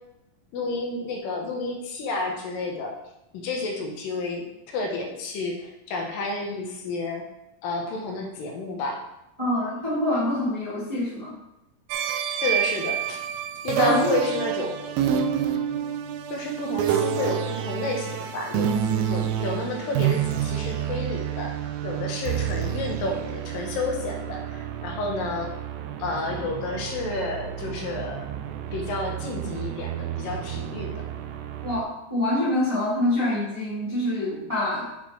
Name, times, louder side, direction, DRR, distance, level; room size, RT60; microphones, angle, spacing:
voice 1, 0.5-3.0 3.3-7.2 7.6-9.0 12.3-13.2 13.6-15.0 16.3-18.7 19.1-21.6 21.8-25.5 26.0-28.3 28.7-30.9, left 3 dB, 80° left, 1 dB, 2.7 m, -30 dB
voice 2, 9.4-11.3 13.8-14.2 31.6-34.9, left 1 dB, 10° right, -9 dB, 1.8 m, -26 dB
sound 1, 11.9-31.8, right 9 dB, 85° right, 2.4 m, -29 dB
7.8 x 4.4 x 4.4 m, 0.88 s
omnidirectional pair, 4.0 m